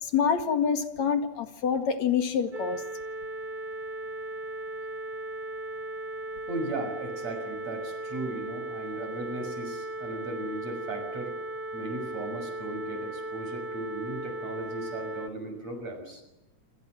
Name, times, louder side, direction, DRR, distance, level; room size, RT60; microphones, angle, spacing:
voice 1, 0.0-2.8, left 7 dB, 65° left, 8 dB, 3.1 m, -26 dB
sound 1, 2.5-15.3, right 2 dB, 30° right, 2.7 m, -37 dB
voice 2, 6.5-11.4 11.7-16.2, right 2 dB, 60° right, 6 dB, 7.7 m, -37 dB
27.5 x 26.5 x 7.7 m, 0.93 s
omnidirectional pair, 3.5 m